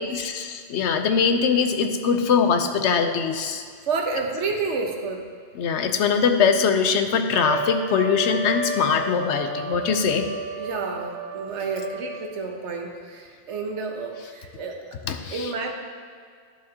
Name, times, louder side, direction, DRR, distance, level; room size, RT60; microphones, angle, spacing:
voice 1, 0.1-3.6 5.6-10.3 15.1-15.5, left 6 dB, 75° left, 7 dB, 0.9 m, -22 dB
voice 2, 3.9-5.3 10.6-14.8 15.3-15.7, right 4 dB, 70° right, 2 dB, 1.2 m, -30 dB
Trumpet, 7.3-12.3, equal, 90° right, 1.3 m, -32 dB
11.5 x 7.0 x 2.8 m, 2.1 s
omnidirectional pair, 1.2 m